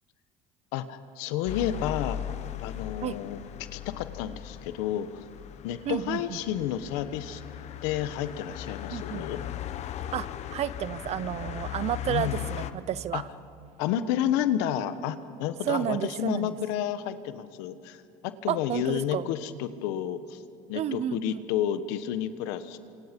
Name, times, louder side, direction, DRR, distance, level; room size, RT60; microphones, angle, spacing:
voice 1, 0.7-2.2 2.6-3.4 3.7-5.1 5.6-7.4 7.8-9.4 12.1-12.5 13.1-13.2 13.8-20.4 20.7-22.8, left 10 dB, 85° left, 11 dB, 1.3 m, -30 dB
sound 1, 1.5-12.7, left 11 dB, 50° left, 1.1 m, -38 dB
voice 2, 5.9-6.4 8.9-9.3 10.1-13.2 15.7-16.5 18.5-19.3 20.7-21.4, right 10 dB, 50° right, 16 dB, 0.9 m, -31 dB
30.0 x 26.5 x 5.3 m, 2.3 s
supercardioid pair, 105°, 14 cm